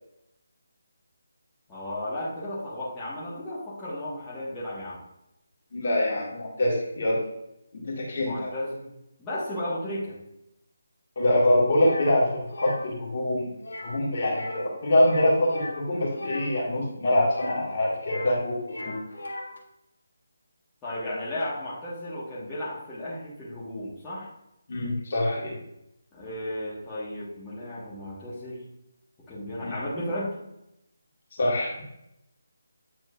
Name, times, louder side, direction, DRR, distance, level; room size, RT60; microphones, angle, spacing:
voice 1, 1.7-5.0 8.2-8.8 9.2-10.1 20.8-24.3 26.1-28.6 29.3-30.3, left 1 dB, 15° left, -10 dB, 1.5 m, -34 dB
voice 2, 5.7-7.2 7.7-8.5 11.2-13.5 13.8-18.9 24.7-25.6 29.6-29.8 31.4-31.9, left 1 dB, 45° left, -4 dB, 1.9 m, -24 dB
sound 1, 11.8-12.1 12.5-12.8 13.6-14.0 14.3-14.7 14.9-16.5 17.2-18.4 18.6-19.6, left 1 dB, 65° left, 1.2 m, -38 dB
8.6 x 4.4 x 2.5 m, 0.83 s
figure-of-eight pair, 150°, 0 cm